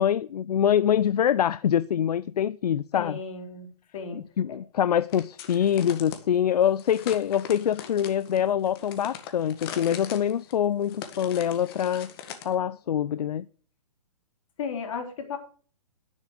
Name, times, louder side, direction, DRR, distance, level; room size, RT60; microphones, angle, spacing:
voice 1, 0.0-3.2 4.1-12.1 12.4-13.5, left 9 dB, 80° left, 0.5 m, -25 dB
voice 2, 2.9-3.7 3.9-4.2 4.5-4.6 14.6-15.4, left 5 dB, 55° left, 3.4 m, -34 dB
sound 1, 5.1-6.2 6.8-12.5, left 9 dB, 35° left, 1.6 m, -41 dB
10.0 x 7.2 x 6.4 m
hypercardioid pair, 145°, 20 cm